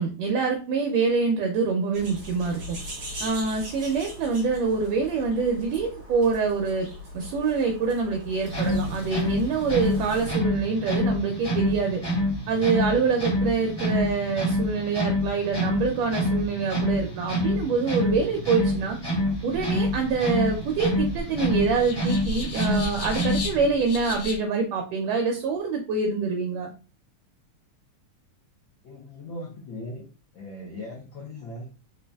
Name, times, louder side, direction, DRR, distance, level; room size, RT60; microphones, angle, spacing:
voice 1, 0.0-2.8 3.2-6.9 7.1-12.0 12.5-19.0 19.4-26.7, right 4 dB, 75° right, 3 dB, 1.6 m, -25 dB
sound 1, 1.9-10.3, left 1 dB, 45° right, 1.4 m, -40 dB
sound 2, 8.4-23.7, left 1 dB, 20° left, 0.6 m, -27 dB
sound 3, 19.1-24.4, left 1 dB, 55° left, 1.7 m, -36 dB
voice 2, 28.8-30.1 30.3-31.7, left 1 dB, 75° left, -3 dB, 1.1 m, -38 dB
4.0 x 3.8 x 2.3 m, 0.34 s
omnidirectional pair, 3.3 m